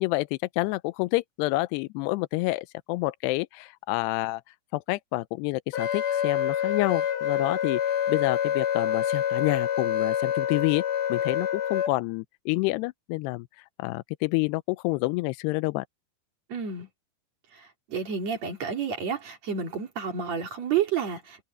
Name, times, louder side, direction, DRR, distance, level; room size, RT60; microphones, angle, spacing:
voice 1, 0.0-4.4 4.7-7.8 8.1-10.8 11.1-15.9, left 21 dB, 90° left, 2.7 m, -28 dB
Wind instrument woodwind instrument, 5.7-11.9, left 9 dB, 65° left, 4.0 m, -27 dB
voice 2, 16.5-16.9 17.5-21.4, right 7 dB, 45° right, 3.9 m, -30 dB
omnidirectional pair, 4.7 m